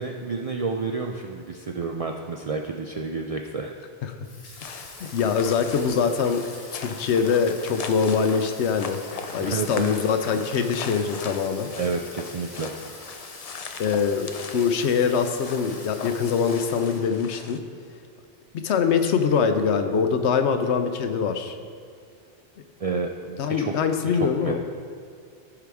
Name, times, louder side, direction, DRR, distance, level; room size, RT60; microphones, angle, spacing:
voice 1, 0.0-3.7 9.4-9.9 11.8-12.7 22.8-23.7 24.1-24.6, right 4 dB, 60° right, 2 dB, 0.4 m, -30 dB
Water tap faucet / Sink (filling or washing), 4.2-17.4, left 2 dB, 65° left, 1.5 m, -45 dB
sound 1, 4.6-17.6, left 5 dB, 50° left, 0.4 m, -39 dB
voice 2, 4.7-6.5 6.7-9.0 9.3-11.7 13.8-17.6 18.5-21.6 23.4-24.6, left 6 dB, 85° left, 8 dB, 0.9 m, -23 dB
14.5 x 4.9 x 3.5 m, 2.2 s
omnidirectional pair, 1.1 m